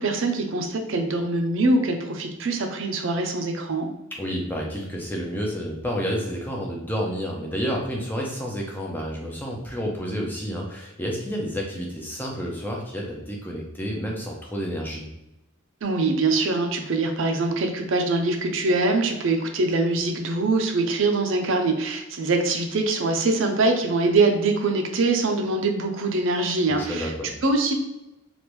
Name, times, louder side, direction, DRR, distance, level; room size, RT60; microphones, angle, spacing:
voice 1, 0.0-3.9 15.8-27.1 27.4-27.7, right 3 dB, 60° right, 4 dB, 0.5 m, -23 dB
voice 2, 4.1-15.1 26.7-27.3, equal, 10° left, -1 dB, 0.4 m, -30 dB
3.3 x 2.5 x 3.0 m, 0.95 s
head